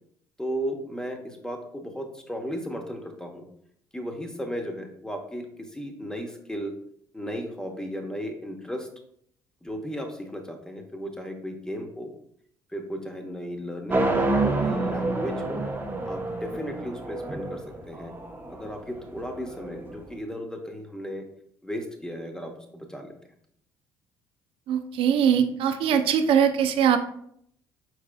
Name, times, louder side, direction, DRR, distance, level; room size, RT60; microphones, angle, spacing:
voice 1, 0.4-3.5 3.9-6.7 7.1-8.9 9.6-12.1 12.7-15.6 16.0-18.2 18.5-21.3 21.6-23.1 25.9-26.0, equal, 5° left, 4 dB, 1.0 m, -35 dB
sound 1, 13.9-20.0, right 2 dB, 20° right, 0.9 m, -28 dB
voice 2, 24.7-27.0, right 8 dB, 65° right, 8 dB, 0.5 m, -21 dB
4.8 x 4.7 x 2.2 m, 0.67 s
supercardioid pair, 65°, 10 cm